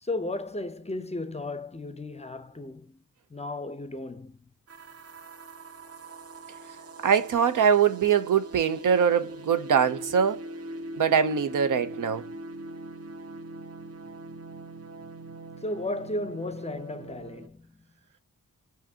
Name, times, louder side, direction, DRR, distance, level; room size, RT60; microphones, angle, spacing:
voice 1, 0.0-3.0 3.3-4.4 15.6-17.8, left 2 dB, 20° left, 0.5 m, -34 dB
sound 1, 4.7-17.5, right 2 dB, 55° right, 0.7 m, -42 dB
voice 2, 7.0-10.4 11.0-12.3, right 7 dB, 85° right, 0.6 m, -23 dB
5.0 x 2.6 x 2.7 m
wide cardioid pair, 80°, 31 cm